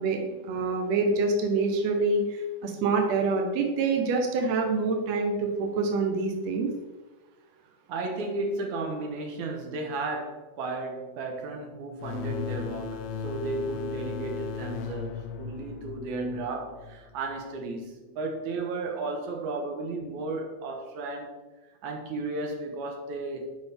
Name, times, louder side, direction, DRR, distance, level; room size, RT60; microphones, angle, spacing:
voice 1, 0.5-6.7, right 3 dB, 80° right, 1.5 m, -26 dB
voice 2, 7.9-21.4 21.8-23.6, right 2 dB, 65° right, 2.1 m, -34 dB
sound 1, 12.0-17.4, left 6 dB, 80° left, 2.3 m, -37 dB
10.5 x 5.1 x 3.5 m
omnidirectional pair, 4.4 m